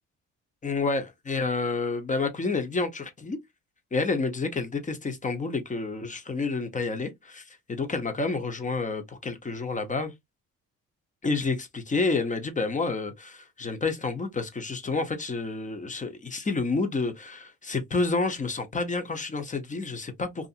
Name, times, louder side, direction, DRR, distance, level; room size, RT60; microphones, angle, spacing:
voice 1, 0.6-3.4 3.9-10.1 11.2-20.5, left 3 dB, 25° left, 0.8 m, -29 dB
2.6 x 2.5 x 2.4 m
cardioid pair, 90°, 30 cm